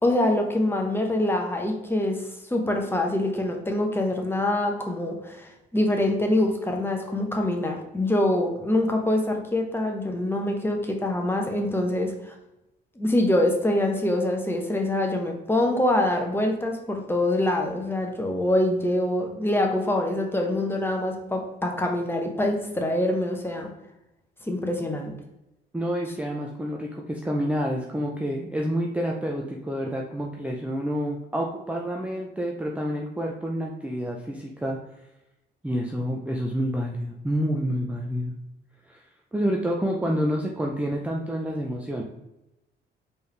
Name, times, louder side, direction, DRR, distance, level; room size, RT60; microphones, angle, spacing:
voice 1, 0.0-12.3 13.0-23.7 24.5-25.1, left 1 dB, 10° left, 2 dB, 0.9 m, -25 dB
voice 2, 25.7-34.8 35.6-38.3 38.9-39.0 39.3-42.0, equal, 5° right, 0 dB, 0.5 m, -28 dB
4.4 x 3.4 x 3.3 m, 0.91 s
cardioid pair, 90°, 20 cm